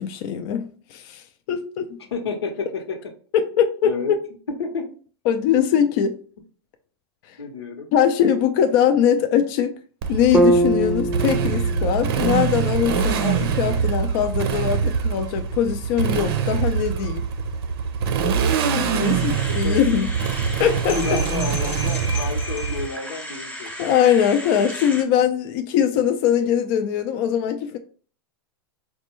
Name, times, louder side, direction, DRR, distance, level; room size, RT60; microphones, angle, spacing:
voice 1, 0.0-2.0 3.3-4.2 5.3-6.2 7.9-9.7 10.1-17.2 18.7-20.1 20.6-21.2 23.8-27.8, left 9 dB, 50° left, 0.4 m, -21 dB
voice 2, 2.1-3.0 3.8-4.1 4.6-4.8 5.8-6.0 7.4-7.9 18.9-19.1 19.5-19.8 20.9-23.9, left 4 dB, 90° left, 0.9 m, -31 dB
Motorcycle, 10.0-22.9, right 6 dB, 65° right, 0.6 m, -24 dB
sound 1, 10.3-14.4, right 1 dB, 10° right, 0.5 m, -24 dB
sound 2, 19.0-25.0, left 2 dB, 10° left, 0.8 m, -34 dB
4.1 x 2.2 x 3.0 m
hypercardioid pair, 115°, 13 cm